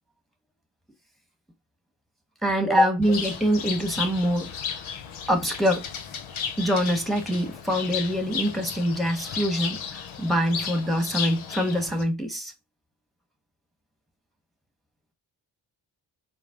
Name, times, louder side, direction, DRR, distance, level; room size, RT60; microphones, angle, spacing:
voice 1, 2.4-4.8 5.3-5.9 6.6-12.5, equal, ahead, 1.3 m, -24 dB
Bird, 3.0-12.0, left 7 dB, 75° left, 0.8 m, -34 dB
4.7 x 2.0 x 3.6 m
supercardioid pair, 40°, 49 cm